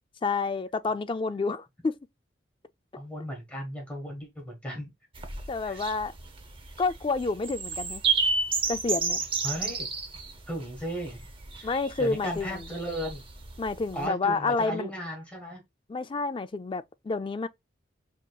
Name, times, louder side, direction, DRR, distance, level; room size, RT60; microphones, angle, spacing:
voice 1, 0.2-1.9 5.5-6.1 6.8-8.0 8.7-9.2 11.6-12.6 13.6-14.9 15.9-17.5, left 4 dB, 25° left, 0.3 m, -29 dB
voice 2, 3.0-4.9 5.6-5.8 9.4-9.9 10.5-11.3 11.5-13.2 13.9-15.6, equal, 5° left, 1.3 m, -36 dB
sound 1, 5.1-14.0, right 4 dB, 25° right, 0.6 m, -32 dB
6.2 x 2.9 x 2.2 m
head